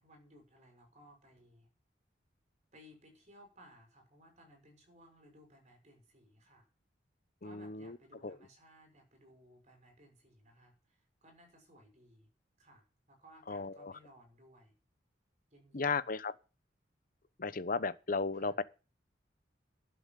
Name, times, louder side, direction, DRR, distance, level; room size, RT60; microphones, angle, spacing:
voice 1, 0.0-1.7 2.7-6.7 7.4-12.3 12.6-14.7 15.5-16.1 18.3-18.6, equal, 40° right, 6.2 m, -61 dB
voice 2, 7.4-8.0 8.2-8.4 13.5-13.9 15.7-16.3 17.4-18.6, left 4 dB, 50° left, 0.9 m, -35 dB
11.5 x 7.0 x 9.1 m
head